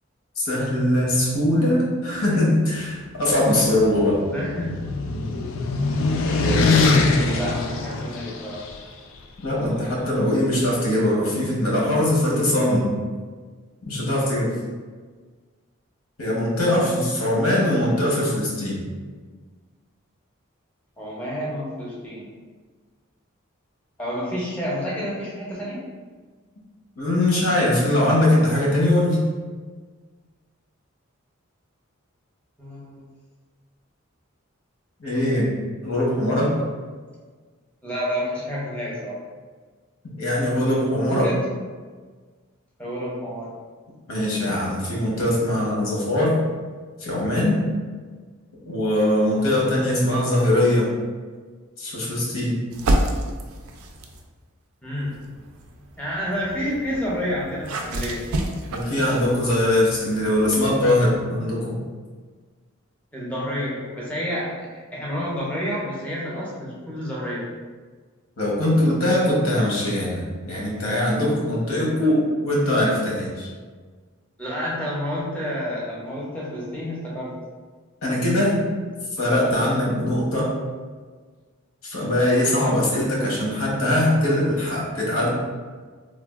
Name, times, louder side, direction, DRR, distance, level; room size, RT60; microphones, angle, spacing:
voice 1, 0.4-4.2 9.4-12.9 13.9-14.5 16.2-18.9 27.0-29.2 35.0-35.5 35.8-36.5 40.2-41.3 44.1-46.4 47.0-47.6 48.6-50.9 51.8-52.5 58.7-61.7 68.4-73.5 78.0-78.5 79.2-80.5 81.8-85.3, left 1 dB, 90° left, -4 dB, 0.9 m, -21 dB
sound 1, 3.5-8.7, left 3 dB, 70° left, 0.3 m, -22 dB
voice 2, 4.3-4.7 7.1-8.6 16.6-17.3 21.0-22.2 24.0-25.8 32.6-33.1 37.8-39.2 41.1-41.4 42.8-43.5 54.8-55.2 56.0-58.2 63.1-67.5 74.4-77.3 78.1-78.6, equal, 5° left, -6 dB, 0.6 m, -29 dB
sound 2, 52.7-54.3 55.0-61.2, right 1 dB, 85° right, 0.4 m, -30 dB
3.3 x 2.3 x 2.4 m, 1.4 s
head